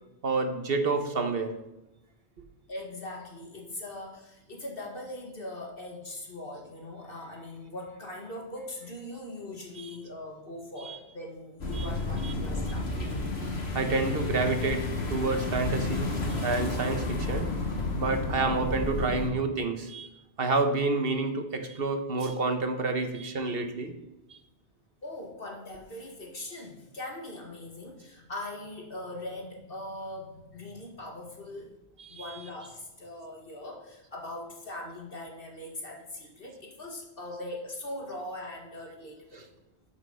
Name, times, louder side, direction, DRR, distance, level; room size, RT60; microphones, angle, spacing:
voice 1, 0.2-1.6 9.8-9.9 10.8-11.0 11.7-11.9 12.2-12.3 13.7-16.1 16.4-17.5 18.0-20.1 20.4-23.9 24.3-24.4 32.0-32.4, right 3 dB, 65° right, 7 dB, 1.4 m, -29 dB
voice 2, 2.7-12.9 25.0-31.7 32.1-39.5, left 1 dB, 60° left, 0 dB, 2.2 m, -41 dB
sound 1, 11.6-19.3, left 2 dB, 80° left, 2.1 m, -31 dB
12.5 x 6.0 x 5.6 m, 0.98 s
omnidirectional pair, 1.1 m